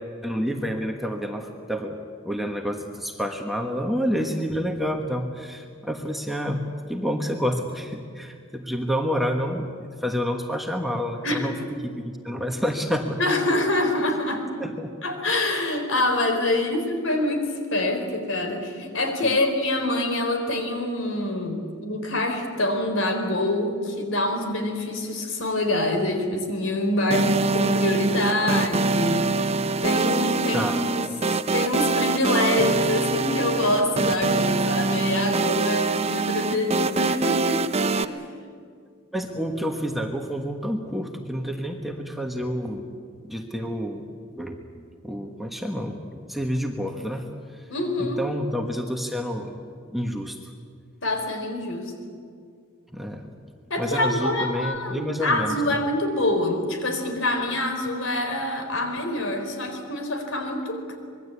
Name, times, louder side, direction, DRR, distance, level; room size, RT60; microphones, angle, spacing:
voice 1, 0.2-2.0 2.2-6.6 6.9-11.6 11.8-13.2 14.6-14.9 16.7-16.8 19.2-19.4 30.5-31.1 39.1-42.9 43.2-44.1 44.3-47.7 48.0-49.6 49.9-50.5 52.9-53.3 53.8-55.6, equal, ahead, 2 dB, 1.4 m, -29 dB
voice 2, 13.2-14.5 15.0-29.3 29.8-31.1 31.5-37.6 38.0-38.2 47.7-48.2 51.0-51.9 53.7-61.0, left 1 dB, 65° left, 5 dB, 4.2 m, -25 dB
sound 1, 27.1-38.0, right 3 dB, 30° right, 0.6 m, -24 dB
25.5 x 22.0 x 8.3 m, 2.3 s
head